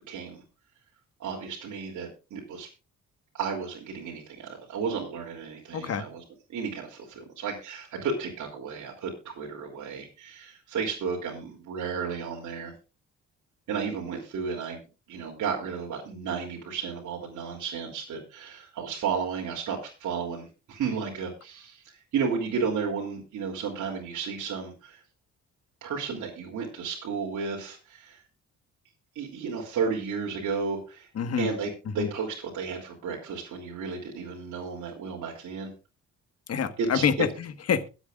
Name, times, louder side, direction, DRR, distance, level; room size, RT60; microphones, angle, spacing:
voice 1, 0.1-0.4 1.2-2.7 3.3-6.2 6.5-12.7 13.7-14.8 15.1-25.0 25.8-28.2 29.1-31.1 31.4-35.7 36.8-37.1, right 5 dB, 70° right, 3.2 m, -33 dB
voice 2, 5.7-6.1 31.1-31.5 32.0-32.1 36.5-37.9, left 7 dB, 55° left, 1.5 m, -27 dB
22.5 x 8.1 x 2.5 m
cardioid pair, 90°, 30 cm